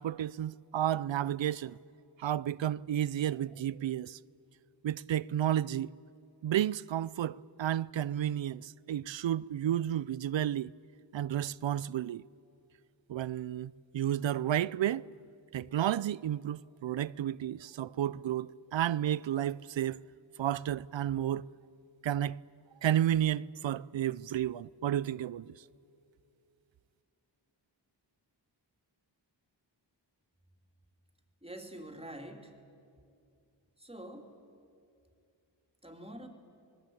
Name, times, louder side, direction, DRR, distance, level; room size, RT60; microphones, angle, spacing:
voice 1, 0.0-1.8 2.2-4.2 4.8-5.9 6.4-10.7 11.1-12.2 13.1-15.1 15.5-20.0 20.4-21.5 22.0-22.4 22.8-25.6, right 11 dB, 80° right, 0.5 m, -32 dB
voice 2, 31.4-32.6 33.8-34.3 35.8-36.3, right 1 dB, 15° right, 2.9 m, -46 dB
26.0 x 20.0 x 8.6 m
wide cardioid pair, 80°, 45 cm